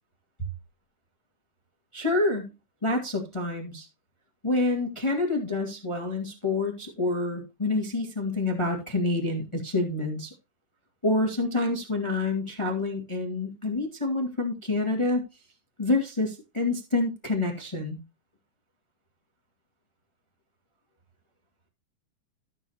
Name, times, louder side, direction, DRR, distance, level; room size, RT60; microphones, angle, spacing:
voice 1, 1.9-2.5 2.8-3.9 4.4-10.3 11.0-15.2 15.8-18.0, left 2 dB, 15° left, 2 dB, 0.9 m, -27 dB
14.0 x 7.1 x 2.9 m, 0.27 s
omnidirectional pair, 3.9 m